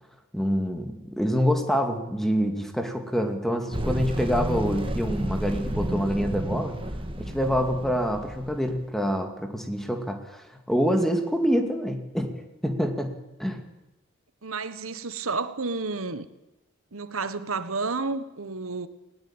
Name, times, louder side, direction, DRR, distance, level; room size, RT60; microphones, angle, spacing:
voice 1, 0.3-6.8 7.2-13.6, equal, ahead, 2.3 m, -26 dB
sound 1, 3.7-8.9, right 1 dB, 25° right, 1.8 m, -31 dB
voice 2, 14.4-16.3 16.9-18.9, right 4 dB, 85° right, 1.4 m, -31 dB
20.0 x 18.0 x 8.9 m
head